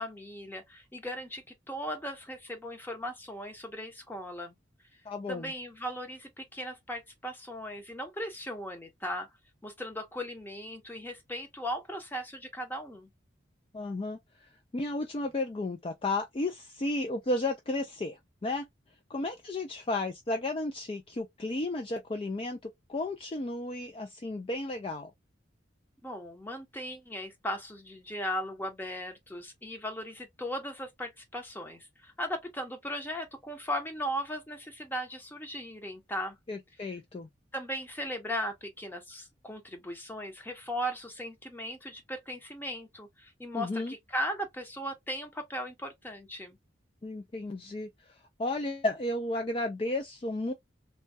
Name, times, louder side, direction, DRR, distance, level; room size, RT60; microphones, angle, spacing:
voice 1, 0.0-4.5 5.3-9.3 9.6-13.1 26.0-36.4 37.5-46.6, equal, 10° left, 0.7 m, -37 dB
voice 2, 5.1-5.5 13.7-18.7 19.1-25.1 36.5-37.3 43.5-43.9 47.0-47.9 48.4-50.5, left 2 dB, 30° left, 0.3 m, -33 dB
3.2 x 2.2 x 2.7 m
head